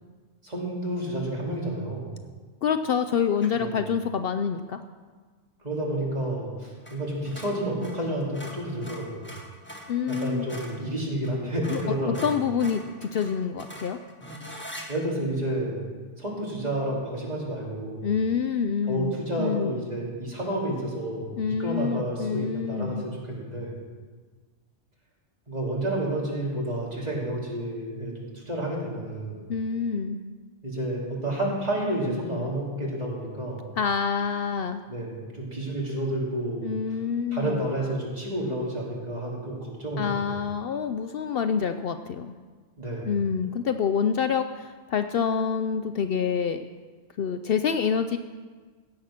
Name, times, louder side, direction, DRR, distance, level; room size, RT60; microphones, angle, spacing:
voice 1, 0.4-2.2 3.5-3.8 5.6-9.3 10.1-12.3 14.9-15.8 16.2-18.1 18.9-23.7 25.5-29.5 30.6-33.7 34.9-36.7 37.3-40.2 42.8-43.1, right 1 dB, 35° right, -4 dB, 2.8 m, -30 dB
voice 2, 2.6-4.8 9.9-10.5 11.7-11.8 12.1-14.0 18.0-19.7 21.3-23.1 29.5-30.2 33.8-34.8 36.6-37.7 40.0-42.3 43.1-46.6 47.2-48.2, left 6 dB, 65° left, 9 dB, 0.7 m, -27 dB
sound 1, 3.4-3.7 6.8-7.0 7.2-10.8 11.2-11.3 11.6-14.9, equal, 10° left, 1.5 m, -42 dB
16.0 x 7.5 x 5.8 m, 1.4 s
omnidirectional pair, 1.1 m